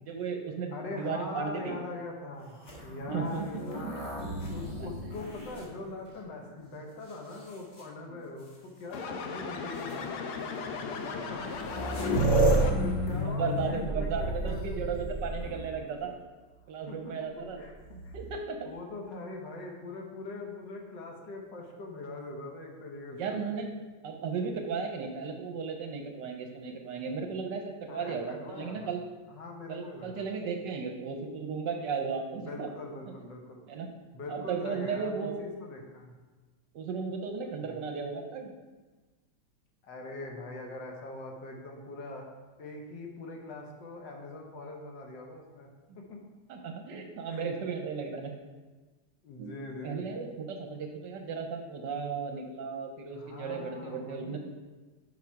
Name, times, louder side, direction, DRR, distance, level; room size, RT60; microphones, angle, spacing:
voice 1, 0.1-1.7 3.1-3.9 4.8-5.1 8.1-8.2 12.3-12.8 13.2-16.2 16.7-17.6 18.1-18.6 23.1-23.7 24.0-29.0 29.7-32.7 33.7-33.9 34.3-35.4 36.7-38.5 46.5-48.3 49.4-49.5 49.8-54.4, right 5 dB, 70° right, 4 dB, 1.2 m, -35 dB
voice 2, 0.7-11.5 12.2-14.6 16.9-17.7 18.0-18.2 18.6-23.4 27.9-28.9 29.3-30.3 32.4-33.6 34.1-36.1 37.6-37.8 39.8-42.3 42.6-45.7 46.0-46.2 47.2-47.5 49.2-50.1 53.1-54.4, left 2 dB, 65° left, 1 dB, 1.5 m, -42 dB
sound 1, 2.6-6.4 7.1-7.8 8.9-9.0 9.7-9.9 11.1-11.2 11.3-15.8 17.7-18.4, right 1 dB, 35° left, 1.7 m, -31 dB
sound 2, 8.9-13.1, left 4 dB, 85° left, 1.5 m, -37 dB
7.2 x 5.1 x 4.6 m, 1.3 s
omnidirectional pair, 2.2 m